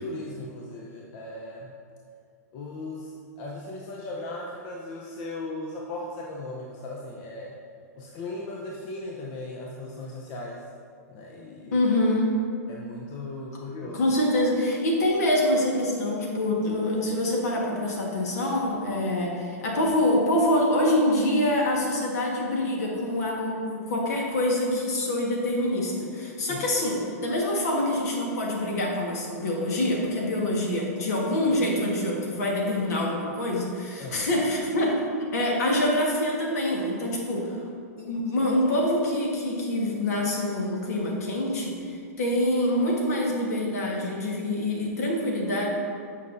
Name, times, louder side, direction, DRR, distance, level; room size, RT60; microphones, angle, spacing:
voice 1, 0.0-1.7 2.5-7.5 8.0-10.6 11.1-11.8 12.7-14.0 26.5-26.7 34.0-34.3, left 2 dB, 45° left, -2 dB, 0.7 m, -37 dB
voice 2, 11.7-12.3 13.9-35.0 35.3-37.6 38.0-45.7, left 1 dB, 70° left, -2 dB, 1.5 m, -25 dB
8.3 x 5.6 x 2.7 m, 2.3 s
hypercardioid pair, 110°, 9 cm